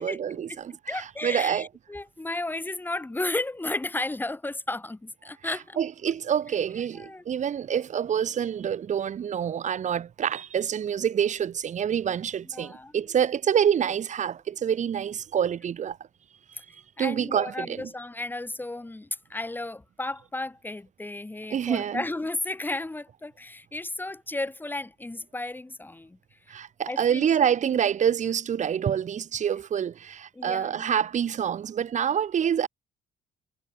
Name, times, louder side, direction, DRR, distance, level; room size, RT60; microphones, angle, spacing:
voice 1, 0.0-1.7 5.4-16.0 17.0-17.9 21.5-22.0 26.5-32.7, right 8 dB, 45° right, 2.2 m, -27 dB
voice 2, 0.9-5.8 6.9-7.2 12.5-13.0 16.5-16.6 17.0-26.6 26.9-27.3 27.7-27.8 30.3-31.0, left 2 dB, 10° left, 4.2 m, -34 dB
cardioid pair, 110°, 17 cm